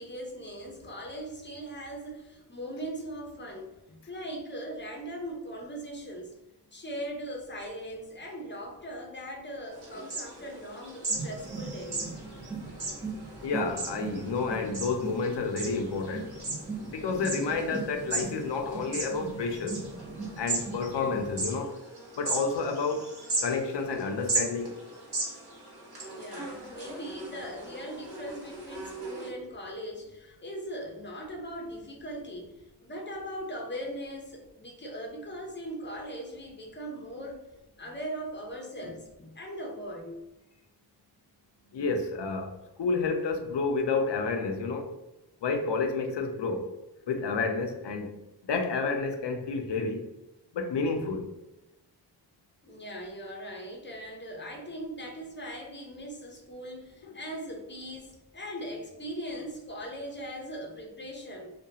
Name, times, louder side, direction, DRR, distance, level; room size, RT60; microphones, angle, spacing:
voice 1, 0.0-6.3 6.7-12.0 26.1-37.4 37.8-40.2 52.6-61.5, equal, 25° left, -1 dB, 0.6 m, -40 dB
sound 1, 9.7-29.3, right 2 dB, 65° right, 1.0 m, -37 dB
sound 2, 11.1-21.6, right 4 dB, 20° right, 0.9 m, -40 dB
voice 2, 13.4-16.3 16.8-19.8 20.4-21.8 22.2-23.1 23.4-24.8 41.7-42.5 42.8-44.9 45.4-46.7 47.1-48.1 48.5-50.0 50.5-51.3, left 4 dB, 85° left, 4 dB, 0.5 m, -30 dB
2.3 x 2.2 x 2.7 m, 0.96 s
wide cardioid pair, 65°, 41 cm